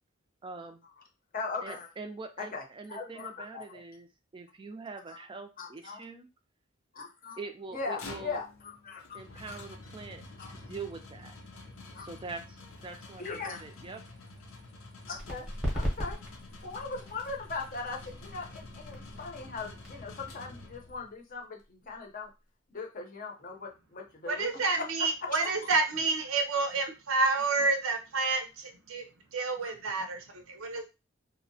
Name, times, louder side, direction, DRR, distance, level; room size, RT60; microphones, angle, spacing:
voice 1, 0.4-0.8 1.6-4.1 4.3-6.3 7.4-8.4 9.1-10.2 10.5-11.3 12.0-14.0, right 4 dB, 25° right, 6 dB, 0.3 m, -43 dB
voice 2, 1.3-1.9 2.4-2.6 2.9-3.8 5.1-5.2 5.6-6.0 6.9-7.4 7.7-9.0 9.3-9.6 10.4-10.5 11.9-12.1 13.2-13.6 15.1-15.5 15.7-16.2 16.6-22.3 22.7-24.5 24.8-25.7 29.6-29.7, left 4 dB, 45° left, 2 dB, 0.6 m, -39 dB
sound 1, 7.7-21.1, left 2 dB, 90° left, 0.6 m, -48 dB
sound 2, 15.1-22.5, equal, 5° right, 0.7 m, -39 dB
voice 3, 24.3-29.0 29.3-30.9, right 3 dB, 85° right, 6 dB, 0.6 m, -29 dB
2.6 x 2.1 x 2.6 m, 0.28 s
head